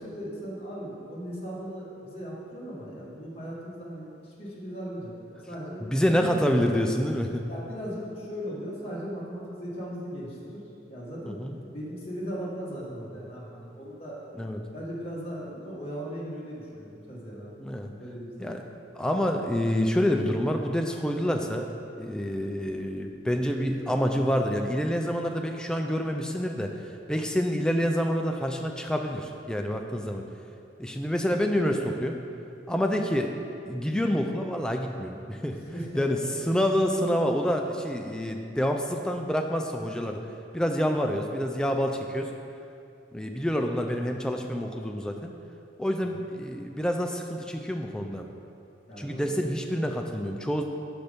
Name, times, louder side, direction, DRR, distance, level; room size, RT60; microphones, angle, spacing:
voice 1, 0.0-5.8 6.2-6.4 7.5-10.6 10.9-14.2 14.7-17.6 18.0-18.6 35.5-36.2 46.1-46.2 48.9-49.3, equal, 30° left, -7 dB, 1.5 m, -38 dB
voice 2, 5.9-7.5 11.3-11.6 14.4-14.6 17.6-17.9 18.4-18.6 19.0-21.7 22.0-26.7 27.1-30.2 30.8-32.2 32.7-33.3 33.7-35.6 35.9-36.2 36.5-40.2 40.5-42.3 43.1-45.3 45.8-48.3 49.0-50.7, equal, 5° left, 3 dB, 0.3 m, -27 dB
6.0 x 5.3 x 5.1 m, 2.7 s
head